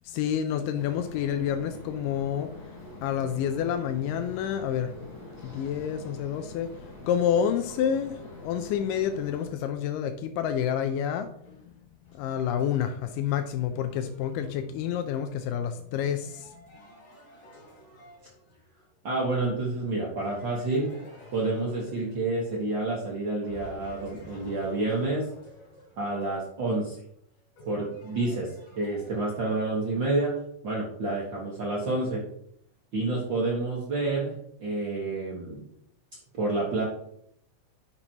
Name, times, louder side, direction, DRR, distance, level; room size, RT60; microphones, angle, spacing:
voice 1, 0.0-2.6 3.0-6.7 7.0-11.7 12.1-16.5, left 9 dB, 85° left, 8 dB, 1.9 m, -29 dB
sound 1, 0.7-9.5, left 1 dB, 35° left, 2.6 m, -45 dB
sound 2, 11.4-18.8 20.2-23.0 23.4-29.9, left 1 dB, 60° left, 4.4 m, -51 dB
voice 2, 19.0-20.9 21.3-25.3 26.0-27.0 27.6-30.3 30.6-32.2 32.9-34.3 34.6-35.7 36.3-36.8, right 2 dB, 70° right, -4 dB, 1.1 m, -29 dB
10.5 x 6.0 x 2.9 m, 0.69 s
omnidirectional pair, 4.4 m